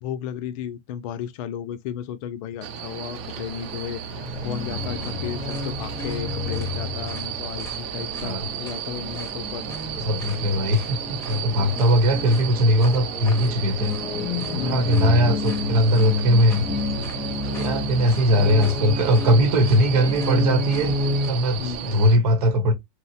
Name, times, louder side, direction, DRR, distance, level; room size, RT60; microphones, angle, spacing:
voice 1, 0.0-9.7 14.5-15.0 21.6-22.0, left 9 dB, 60° left, 0.5 m, -34 dB
sound 1, 2.6-22.2, right 8 dB, 55° right, 0.6 m, -33 dB
sound 2, 4.1-21.3, left 2 dB, 15° left, 0.7 m, -30 dB
voice 2, 9.9-13.9 14.5-16.7 17.4-20.9 21.3-22.7, equal, 80° right, 1.1 m, -20 dB
2.9 x 2.1 x 2.8 m
supercardioid pair, 145°, 19 cm